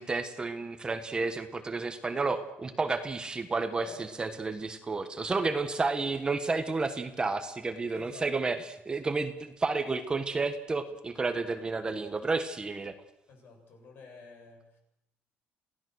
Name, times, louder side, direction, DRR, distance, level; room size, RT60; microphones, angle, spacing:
voice 1, 0.0-8.6 8.8-12.9, right 3 dB, 20° right, 8 dB, 1.3 m, -31 dB
voice 2, 3.8-4.2 5.4-5.5 7.9-8.3 13.3-14.8, left 4 dB, 55° left, 2 dB, 7.6 m, -49 dB
27.5 x 16.5 x 6.4 m, 0.85 s
cardioid pair, 140°, 4 cm